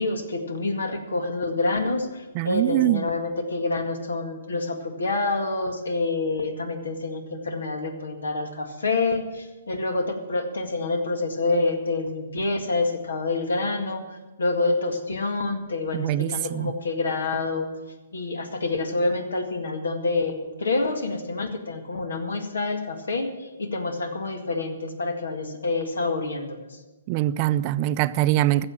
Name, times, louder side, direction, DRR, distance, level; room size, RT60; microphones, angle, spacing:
voice 1, 0.0-17.7 18.1-26.6, left 3 dB, 80° left, 1.9 m, -27 dB
voice 2, 2.3-3.1 15.9-16.7 27.1-28.6, right 14 dB, 35° right, 0.5 m, -23 dB
15.0 x 7.0 x 8.9 m
hypercardioid pair, 130°, 0 cm